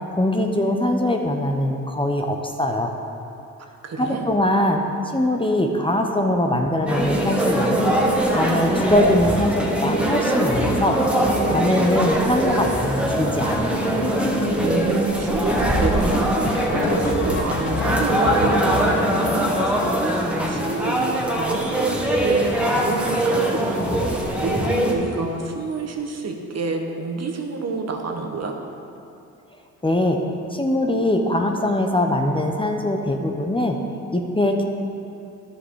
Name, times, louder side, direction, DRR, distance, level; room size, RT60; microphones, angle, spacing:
voice 1, 0.1-2.9 4.0-4.8 5.1-8.0 8.3-11.0 11.5-13.9 29.8-30.2 30.5-33.8 34.1-34.6, left 1 dB, 15° left, 3 dB, 1.0 m, -22 dB
voice 2, 3.8-4.2 14.6-19.7 20.5-23.9 24.4-28.5, right 4 dB, 45° right, 3 dB, 1.4 m, -28 dB
sound 1, 6.9-24.9, right 1 dB, 5° right, 1.9 m, -22 dB
sound 2, 13.7-21.9 22.2-22.3 22.5-22.8 23.0-23.6 23.9-24.1 24.9-25.0 25.5-25.6 25.8-26.0 28.3-28.4 30.7-30.8, left 5 dB, 35° left, 0.7 m, -33 dB
11.5 x 6.8 x 4.8 m, 2.7 s
supercardioid pair, 60°, 36 cm